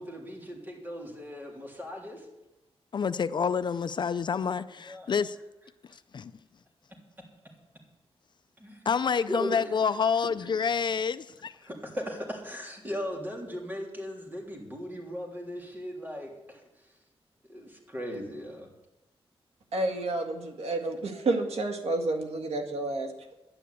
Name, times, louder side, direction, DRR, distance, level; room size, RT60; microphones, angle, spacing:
voice 1, 0.0-2.3 4.8-5.1 8.6-8.8 9.3-9.7 11.6-16.9 17.5-18.7, equal, 20° right, 3.4 m, -38 dB
voice 2, 2.9-5.4 6.1-6.3 8.9-11.5, left 6 dB, 50° left, 0.5 m, -28 dB
voice 3, 19.7-23.3, right 2 dB, 85° right, 1.9 m, -30 dB
11.0 x 9.8 x 8.5 m
wide cardioid pair, 130°, 10 cm